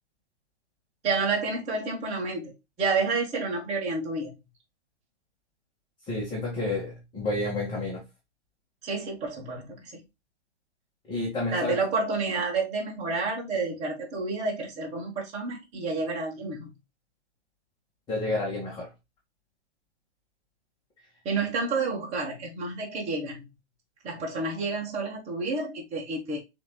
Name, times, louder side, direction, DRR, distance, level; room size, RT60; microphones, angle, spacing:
voice 1, 1.0-4.4 8.8-10.0 11.5-16.7 21.2-23.5 24.0-26.4, right 3 dB, 20° right, 1.5 m, -30 dB
voice 2, 6.1-8.0 11.1-11.8 18.1-18.9, left 2 dB, 15° left, 1.8 m, -30 dB
6.8 x 3.0 x 2.4 m
figure-of-eight pair, 120°, 35 cm